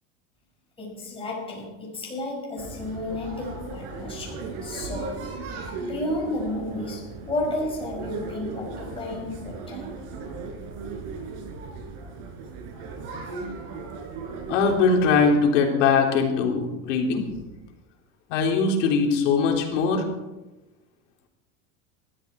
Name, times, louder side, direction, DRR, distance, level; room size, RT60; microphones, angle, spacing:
voice 1, 0.8-5.2 5.8-10.0, left 1 dB, 15° left, -3 dB, 5.6 m, -32 dB
sound 1, 2.6-15.4, right 3 dB, 60° right, 4.5 m, -37 dB
voice 2, 14.5-17.3 18.3-20.0, left 5 dB, 90° left, 1 dB, 3.6 m, -21 dB
19.5 x 13.0 x 4.7 m, 1.1 s
supercardioid pair, 140°, 36 cm